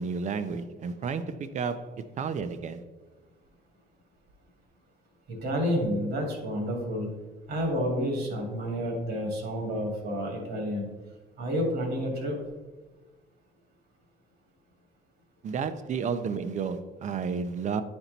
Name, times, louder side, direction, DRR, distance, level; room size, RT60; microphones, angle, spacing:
voice 1, 0.0-2.8 15.4-17.8, right 5 dB, 45° right, 11 dB, 0.6 m, -32 dB
voice 2, 5.3-7.1 7.5-10.9 11.4-12.4, equal, 75° right, 1 dB, 2.3 m, -30 dB
9.5 x 4.4 x 4.0 m, 1.2 s
cardioid pair, 110°, 17 cm